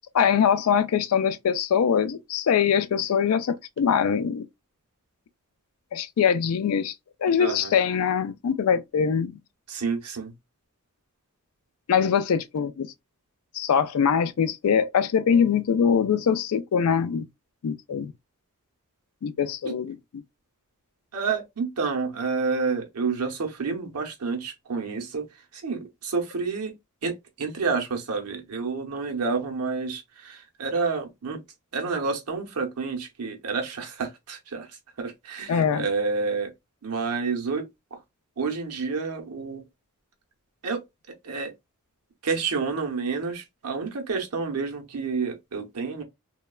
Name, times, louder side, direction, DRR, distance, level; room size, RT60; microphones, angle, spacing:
voice 1, 0.1-4.5 5.9-6.9 7.2-9.4 11.9-12.9 13.5-17.3 17.6-18.1 19.2-20.0 35.5-35.9, left 7 dB, 70° left, 0.4 m, -23 dB
voice 2, 7.4-7.7 9.7-10.3 19.6-19.8 21.1-25.3 25.5-26.7 27.0-31.4 31.7-34.7 35.0-36.5 36.8-38.0 38.4-39.6 40.6-40.8 41.2-41.5 42.2-46.0, right 4 dB, 85° right, 0.8 m, -29 dB
3.0 x 2.2 x 2.2 m
head